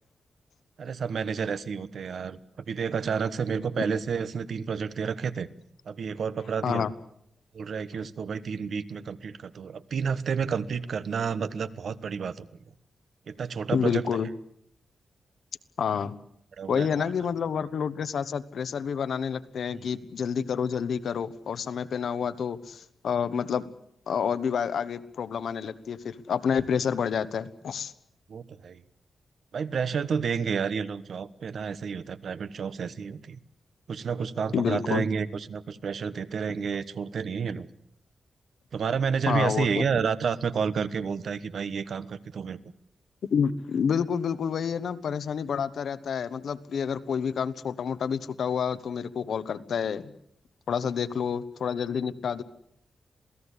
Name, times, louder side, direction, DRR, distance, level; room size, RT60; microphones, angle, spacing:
voice 1, 0.8-2.4 2.7-5.5 5.9-6.8 7.5-12.4 13.3-14.0 16.6-17.1 19.8-19.9 28.3-28.8 29.5-33.4 33.9-37.7 38.7-42.6, right 6 dB, 60° right, 13 dB, 1.2 m, -30 dB
voice 2, 13.7-14.3 15.8-16.1 16.7-23.7 24.1-27.9 34.5-35.0 39.3-40.0 43.3-50.1 50.7-52.4, left 7 dB, 70° left, 12 dB, 1.2 m, -28 dB
27.5 x 17.5 x 8.4 m, 0.71 s
wide cardioid pair, 180°, 0 cm